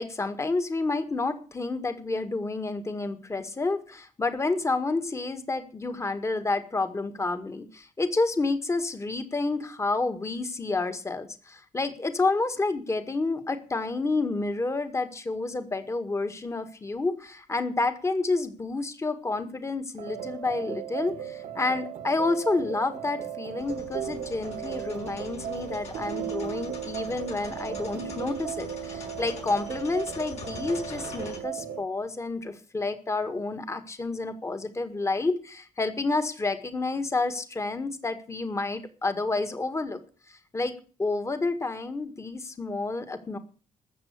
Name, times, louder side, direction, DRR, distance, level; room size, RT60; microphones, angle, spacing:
voice 1, 0.0-40.0 40.3-40.7 41.0-43.4, left 3 dB, 25° left, 8 dB, 1.8 m, -29 dB
sound 1, 20.0-31.9, right 10 dB, 85° right, 1.8 m, -36 dB
sound 2, 23.6-31.4, left 4 dB, 65° left, 5.8 m, -44 dB
13.5 x 7.5 x 8.2 m, 0.40 s
cardioid pair, 95°, 12 cm